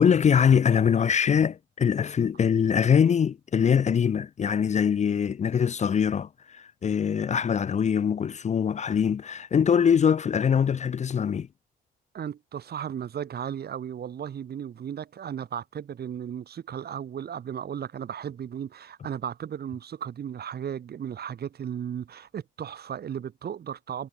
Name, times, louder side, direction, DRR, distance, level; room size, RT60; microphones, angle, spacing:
voice 1, 0.0-11.5, left 7 dB, 35° left, 0.5 m, -23 dB
voice 2, 12.1-24.1, right 9 dB, 55° right, 1.4 m, -35 dB
cardioid pair, 90°, 20 cm